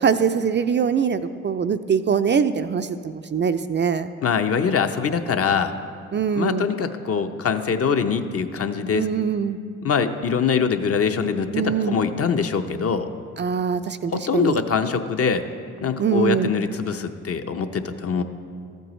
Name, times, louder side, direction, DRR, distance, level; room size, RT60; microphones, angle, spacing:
voice 1, 0.0-4.1 6.1-6.7 8.9-9.6 11.5-12.0 13.4-14.6 16.0-16.5, right 7 dB, 35° right, 10 dB, 0.4 m, -23 dB
voice 2, 4.2-5.7 6.3-9.1 9.8-13.1 14.1-15.4 15.8-18.2, left 6 dB, 45° left, 8 dB, 0.7 m, -23 dB
13.5 x 7.9 x 3.1 m, 2.3 s
hypercardioid pair, 50°, 34 cm